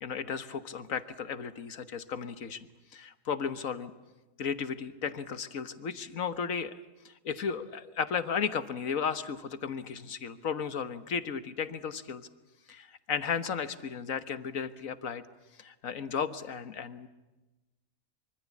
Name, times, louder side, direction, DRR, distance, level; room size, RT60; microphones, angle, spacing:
voice 1, 0.0-3.9 4.4-6.8 7.0-12.3 12.7-15.2 15.6-17.1, left 6 dB, 90° left, 12 dB, 1.7 m, -34 dB
25.0 x 24.5 x 8.4 m, 1.1 s
omnidirectional pair, 1.4 m